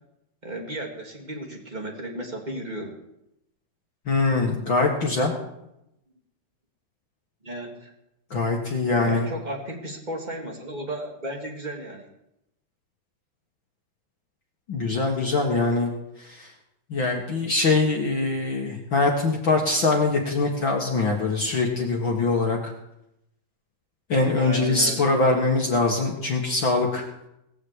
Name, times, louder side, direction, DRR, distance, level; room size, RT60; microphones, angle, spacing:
voice 1, 0.4-2.9 7.4-7.9 9.0-12.1 24.4-25.0, right 1 dB, 20° right, 1 dB, 1.3 m, -34 dB
voice 2, 4.1-5.3 8.3-9.3 14.7-15.9 16.3-16.5 16.9-22.7 24.1-27.0, left 3 dB, 55° left, 0 dB, 1.4 m, -23 dB
19.5 x 7.4 x 8.2 m, 0.85 s
omnidirectional pair, 4.6 m